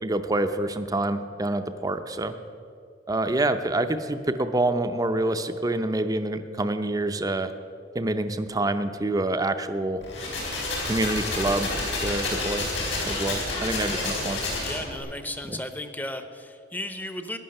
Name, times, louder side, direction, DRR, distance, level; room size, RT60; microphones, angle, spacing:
voice 1, 0.0-2.3 3.1-7.5 7.9-10.0 10.9-11.7 12.0-12.7 13.0-14.4 15.5-15.6, right 2 dB, 20° right, 9 dB, 0.6 m, -27 dB
sound 1, 10.0-15.0, left 2 dB, 85° left, 4.6 m, -29 dB
voice 2, 14.6-17.4, left 1 dB, 10° left, 8 dB, 0.8 m, -35 dB
14.5 x 10.0 x 6.6 m, 2.4 s
head